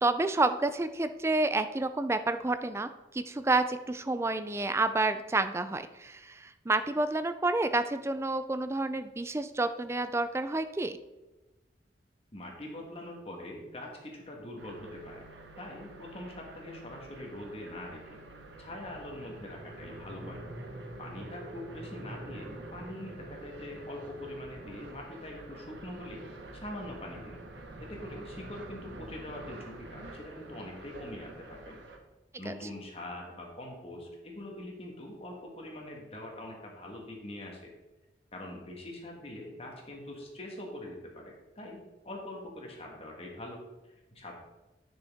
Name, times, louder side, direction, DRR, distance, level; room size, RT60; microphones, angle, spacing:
voice 1, 0.0-11.0 32.5-32.6, right 2 dB, 15° right, 10 dB, 0.4 m, -29 dB
voice 2, 12.3-15.3 15.6-18.2 18.6-20.4 21.0-26.2 26.5-27.4 27.8-31.8 32.4-37.6 38.3-41.8 42.0-44.3, left 1 dB, 35° left, 0 dB, 1.5 m, -43 dB
sound 1, 14.6-32.0, right 2 dB, 85° right, 1.2 m, -47 dB
10.5 x 6.3 x 3.6 m, 1.1 s
head